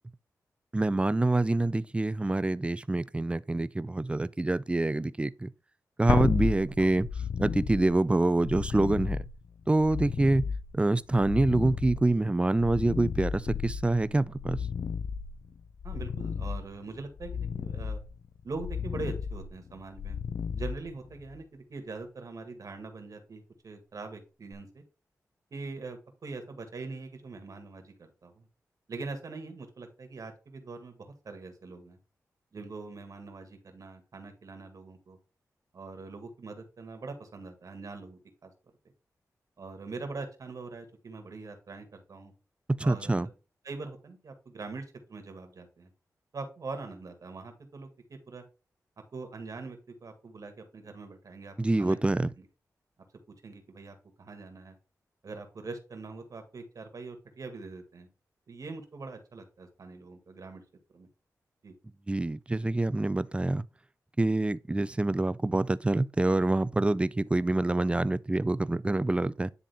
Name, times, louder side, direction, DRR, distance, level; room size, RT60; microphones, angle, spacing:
voice 1, 0.7-5.5 6.0-7.1 7.4-9.2 9.7-10.5 10.7-14.6 42.7-43.3 51.6-52.3 62.1-63.7 64.2-69.5, right 2 dB, 15° right, 0.4 m, -26 dB
sound 1, 6.1-21.4 24.5-24.6, left 6 dB, 65° left, 0.5 m, -34 dB
voice 2, 15.8-18.0 18.4-20.2 20.5-24.8 25.5-28.5 28.9-32.0 32.5-35.2 35.7-38.5 39.6-42.3 42.8-43.3 43.6-45.9 46.3-48.4 49.1-52.5 53.3-54.8 55.2-58.1 58.5-60.6 60.9-61.1 61.6-61.7, right 3 dB, 65° right, 1.9 m, -43 dB
10.0 x 3.5 x 3.5 m
cardioid pair, 70°, 6 cm